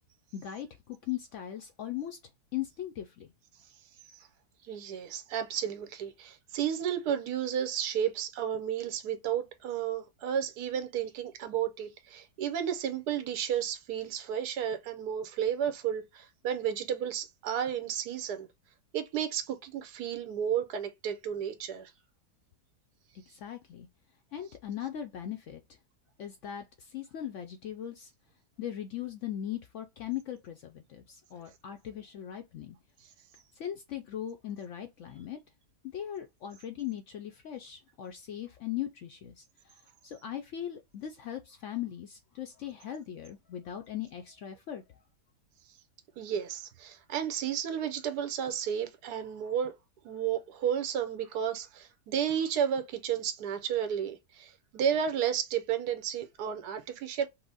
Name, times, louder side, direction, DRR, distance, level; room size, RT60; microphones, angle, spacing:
voice 1, 0.3-2.2 2.5-3.3 23.3-23.9 24.3-25.6 26.2-28.1 28.6-32.8 33.6-35.4 35.9-44.8, left 11 dB, 70° left, 0.7 m, -39 dB
voice 2, 4.7-18.5 18.9-21.9 46.2-49.7 50.0-57.3, right 9 dB, 75° right, 1.3 m, -32 dB
5.7 x 2.0 x 3.9 m
omnidirectional pair, 1.7 m